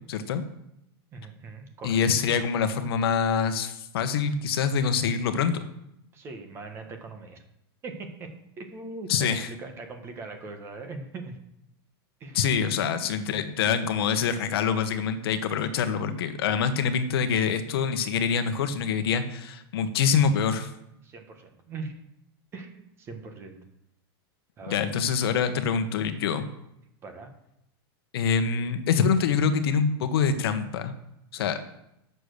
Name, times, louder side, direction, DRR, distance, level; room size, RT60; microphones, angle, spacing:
voice 1, 0.1-0.4 1.8-5.6 9.1-9.5 12.3-20.7 24.7-26.5 28.1-30.9 31.3-31.6, left 6 dB, 65° left, 9 dB, 1.1 m, -25 dB
voice 2, 1.1-2.0 6.1-7.5 7.8-8.3 8.6-11.4 12.2-12.5 21.0-21.9 22.5-23.6 24.6-24.9 27.0-27.3, right 3 dB, 20° right, 6 dB, 1.1 m, -40 dB
8.4 x 6.8 x 6.5 m, 0.82 s
supercardioid pair, 170°, 14 cm